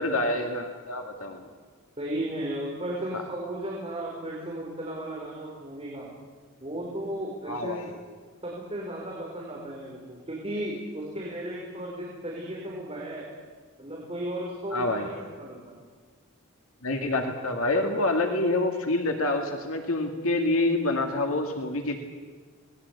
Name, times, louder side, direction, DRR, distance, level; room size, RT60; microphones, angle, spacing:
voice 1, 0.0-1.4 3.1-3.2 7.5-7.9 14.7-15.1 16.8-22.0, left 2 dB, 75° left, 4 dB, 2.2 m, -27 dB
voice 2, 2.0-6.1 6.6-7.8 8.4-13.3 13.8-15.8, right 1 dB, 25° right, -4 dB, 4.8 m, -35 dB
26.5 x 20.0 x 8.4 m, 1.5 s
head